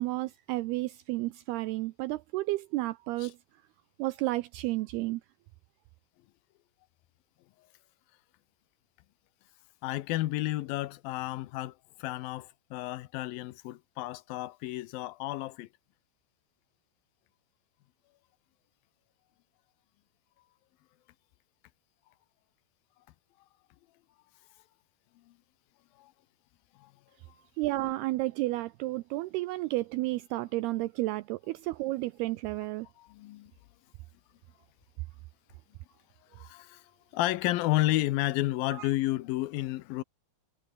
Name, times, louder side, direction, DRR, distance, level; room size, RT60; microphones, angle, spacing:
voice 1, 0.0-3.4 4.0-5.2 27.6-32.9 38.7-38.9, right 19 dB, 85° right, 2.3 m, -32 dB
voice 2, 9.8-15.7 26.0-26.1 26.8-26.9 33.0-33.5 36.4-36.8 37.1-40.0, left 17 dB, 80° left, 2.1 m, -31 dB
omnidirectional pair, 5.1 m